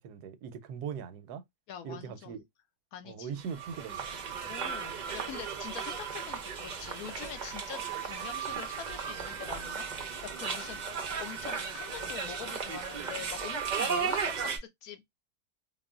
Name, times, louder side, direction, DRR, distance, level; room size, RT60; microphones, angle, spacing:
voice 1, 0.0-1.4 1.8-2.4 3.0-4.1, right 7 dB, 85° right, 1.1 m, -40 dB
voice 2, 1.7-2.4 2.9-3.4 4.5-15.2, left 8 dB, 75° left, 1.1 m, -44 dB
sound 1, 3.4-14.6, right 6 dB, 65° right, 0.4 m, -35 dB
3.7 x 2.1 x 2.3 m
omnidirectional pair, 1.6 m